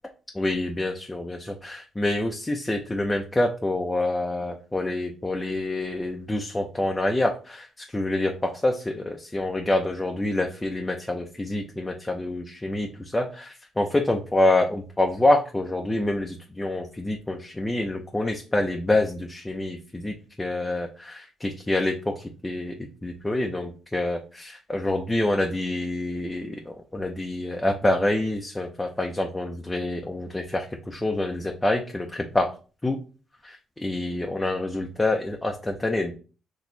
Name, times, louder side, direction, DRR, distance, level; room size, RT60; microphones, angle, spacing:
voice 1, 0.4-1.4 1.6-7.3 7.9-8.3 8.6-12.9 13.1-13.2 13.8-16.3 16.6-19.8 20.0-20.1 20.4-20.9 21.7-22.0 22.4-22.7 23.0-24.2 24.7-26.4 26.9-30.6 31.0-32.1 32.3-32.5 32.8-33.0 33.8-35.5 35.8-36.1, left 1 dB, 15° left, 2 dB, 0.6 m, -26 dB
4.3 x 3.0 x 3.9 m, 0.35 s
cardioid pair, 90°, 0 cm